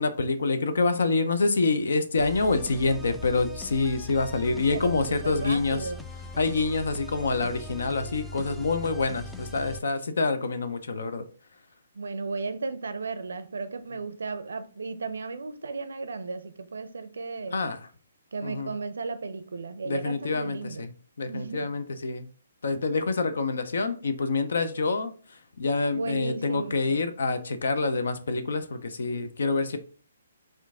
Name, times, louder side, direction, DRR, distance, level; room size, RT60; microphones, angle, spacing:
voice 1, 0.0-5.9 6.4-11.2 17.5-17.9 18.4-18.7 19.8-20.9 21.2-22.3 22.6-25.1 25.6-29.8, left 3 dB, 65° left, 0.5 m, -27 dB
sound 1, 2.2-9.8, left 1 dB, 5° left, 0.3 m, -41 dB
voice 2, 4.3-6.0 10.4-10.5 11.9-17.6 18.3-20.8 21.3-21.7 25.9-27.0, right 4 dB, 70° right, 0.5 m, -35 dB
4.4 x 2.5 x 3.5 m
figure-of-eight pair, 135°, 0 cm